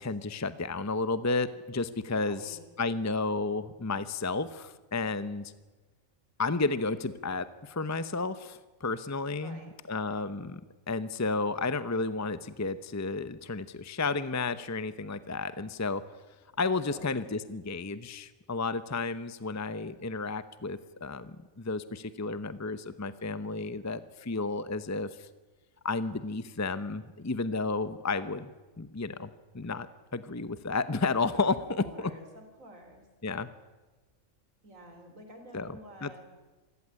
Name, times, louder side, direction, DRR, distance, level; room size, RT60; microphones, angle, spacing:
voice 1, 0.0-5.5 6.4-9.6 9.9-10.6 10.9-16.0 16.6-25.3 25.8-28.5 28.8-29.3 29.5-32.1 33.2-33.5 35.5-36.2, left 3 dB, 15° left, 13 dB, 0.7 m, -32 dB
voice 2, 2.1-2.9 9.4-9.7 16.9-17.2 31.8-33.1 34.6-36.2, right 1 dB, 85° right, 5 dB, 4.4 m, -49 dB
26.5 x 15.5 x 9.8 m, 1.3 s
omnidirectional pair, 1.3 m